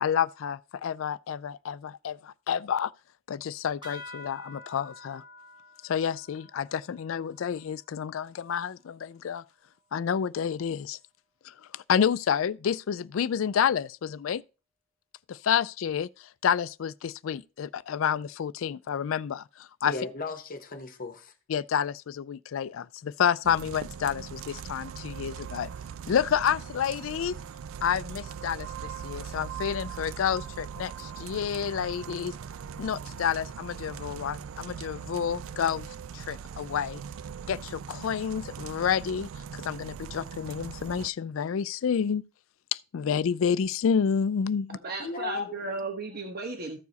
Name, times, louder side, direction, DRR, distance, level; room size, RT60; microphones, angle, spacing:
voice 1, 0.0-2.9 3.3-5.2 5.8-9.4 9.9-11.0 11.4-14.4 15.3-19.9 21.5-25.7 26.1-27.4 27.8-32.3 32.8-35.9 36.1-37.0 37.5-42.2 42.7-44.8, left 7 dB, 75° left, 0.4 m, -29 dB
sound 1, 3.8-8.8, left 2 dB, 25° right, 1.5 m, -49 dB
voice 2, 19.8-21.3 45.0-45.6, left 3 dB, 45° left, 1.0 m, -36 dB
sound 2, 23.4-41.1, right 7 dB, 85° right, 0.4 m, -40 dB
voice 3, 44.8-46.8, right 3 dB, 50° right, 1.1 m, -35 dB
14.0 x 4.8 x 4.0 m
head